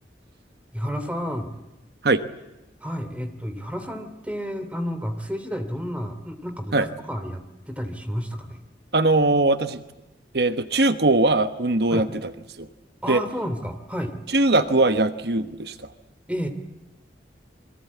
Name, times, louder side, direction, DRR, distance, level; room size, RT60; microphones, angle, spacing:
voice 1, 0.7-1.5 2.8-8.6 11.9-12.1 13.0-14.2 16.3-16.5, equal, 5° right, 8 dB, 2.8 m, -31 dB
voice 2, 8.9-9.8 10.3-12.1 12.6-12.7 13.1-13.2 14.3-15.9, right 2 dB, 65° right, 10 dB, 1.1 m, -20 dB
28.5 x 23.0 x 8.4 m, 1.0 s
head